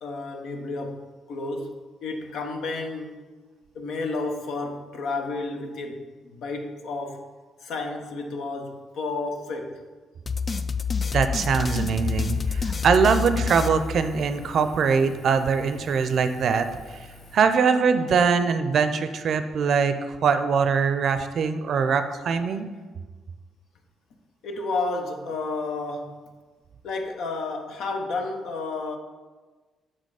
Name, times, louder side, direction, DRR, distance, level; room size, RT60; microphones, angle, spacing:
voice 1, 0.0-3.2 3.7-7.2 7.6-9.8 24.4-26.2 26.8-29.0, left 3 dB, 75° left, 4 dB, 0.8 m, -31 dB
sound 1, 10.3-14.5, left 5 dB, 35° left, 0.3 m, -28 dB
voice 2, 11.1-17.1 17.3-22.7, right 5 dB, 60° right, 10 dB, 0.5 m, -22 dB
Engine, 11.5-17.4, left 2 dB, 55° left, 1.1 m, -48 dB
6.1 x 4.3 x 4.8 m, 1.3 s
cardioid pair, 90°, 0 cm